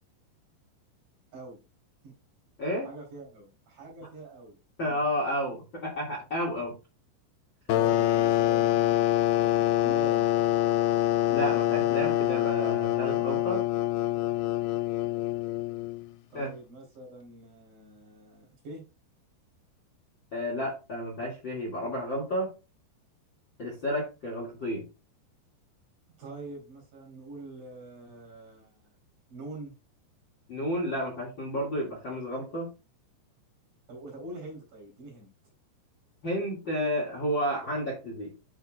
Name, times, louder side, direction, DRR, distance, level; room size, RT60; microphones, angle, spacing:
voice 1, 2.8-4.6 7.7-10.3 16.3-18.8 26.2-29.0 29.3-29.7 33.9-35.3, right 2 dB, 55° right, -1 dB, 4.9 m, -45 dB
voice 2, 4.8-6.8 11.3-13.6 16.3-16.5 20.3-22.5 23.6-24.8 30.5-32.7 36.2-38.3, equal, 35° left, -2 dB, 2.0 m, -31 dB
sound 1, 7.7-16.1, left 14 dB, 90° left, 2.2 m, -25 dB
11.0 x 5.5 x 2.4 m, 0.28 s
omnidirectional pair, 5.1 m